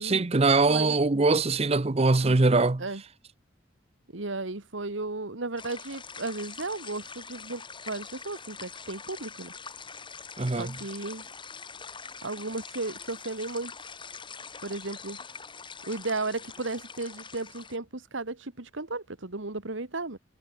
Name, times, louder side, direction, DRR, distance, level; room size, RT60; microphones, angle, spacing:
voice 1, 0.0-2.8 10.4-10.7, right 3 dB, 30° right, 0.7 m, -22 dB
voice 2, 4.1-9.5 10.6-11.2 12.2-13.7 14.6-15.2 15.8-20.2, right 2 dB, 75° right, 1.9 m, -34 dB
sound 1, 5.6-17.8, left 5 dB, 25° left, 4.9 m, -44 dB
head